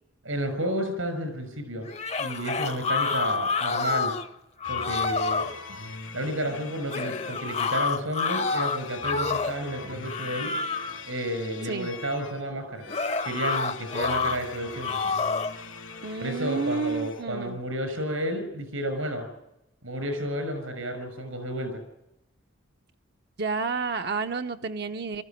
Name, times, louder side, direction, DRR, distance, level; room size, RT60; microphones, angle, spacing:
voice 1, 0.2-1.9 2.2-4.1 4.7-5.5 6.1-10.5 11.0-12.9 13.2-15.0 16.2-19.3 19.8-21.8, right 1 dB, 85° right, 8 dB, 5.9 m, -31 dB
sound 1, 1.9-4.3 4.6-5.5 6.9-9.6 10.0-11.0 12.9-14.4 14.8-15.6, left 5 dB, 30° left, 0.8 m, -28 dB
sound 2, 4.6-17.2, left 4 dB, 80° left, 3.1 m, -42 dB
voice 2, 16.0-17.6 23.4-25.2, right 4 dB, 50° right, 6 dB, 0.7 m, -30 dB
21.5 x 14.0 x 9.1 m, 0.88 s
head